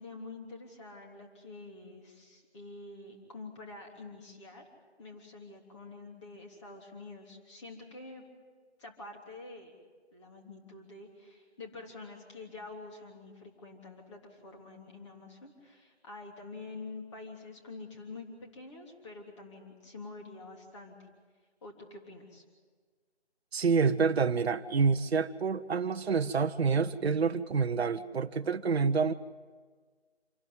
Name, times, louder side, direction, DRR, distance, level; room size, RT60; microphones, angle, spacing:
voice 1, 0.0-4.6 5.0-8.2 8.8-9.8 10.1-21.0 21.6-22.4, left 3 dB, 25° left, 1 dB, 3.4 m, -47 dB
voice 2, 23.5-29.1, right 5 dB, 65° right, 8 dB, 0.9 m, -27 dB
27.5 x 12.0 x 9.7 m, 1.5 s
figure-of-eight pair, 165°, 33 cm